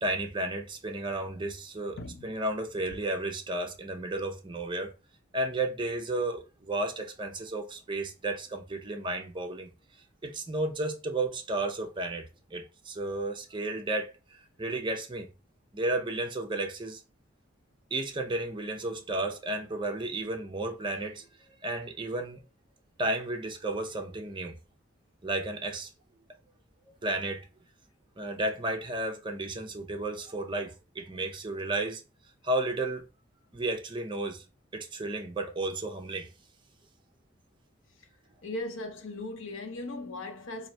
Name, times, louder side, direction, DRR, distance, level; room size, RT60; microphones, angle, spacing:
voice 1, 0.0-4.9 5.3-9.7 10.2-14.1 14.6-15.3 15.7-17.0 17.9-21.2 21.6-22.4 23.0-24.6 25.2-25.9 26.9-27.4 28.2-32.0 32.4-33.0 33.5-34.4 34.7-36.3, right 2 dB, 25° right, 0.6 m, -33 dB
voice 2, 2.0-2.3 38.4-40.7, left 2 dB, 75° left, 0.8 m, -38 dB
3.9 x 2.6 x 3.2 m
head